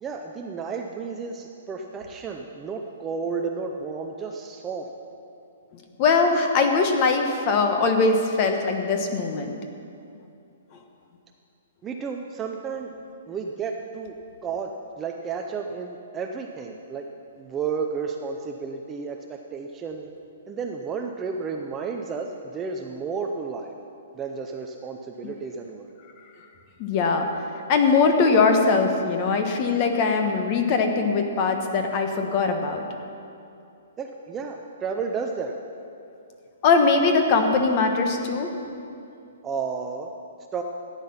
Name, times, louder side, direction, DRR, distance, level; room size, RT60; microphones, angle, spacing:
voice 1, 0.0-4.9 11.8-12.9 13.3-14.1 14.4-17.1 17.4-20.1 20.5-23.7 24.1-25.9 34.0-35.6 39.4-40.1 40.5-40.6, right 5 dB, 10° right, 3 dB, 0.5 m, -32 dB
voice 2, 6.0-9.5 26.8-27.3 27.7-32.8 36.6-38.5, left 4 dB, 25° left, 5 dB, 1.1 m, -21 dB
14.5 x 9.7 x 5.7 m, 2.6 s
hypercardioid pair, 170°, 0 cm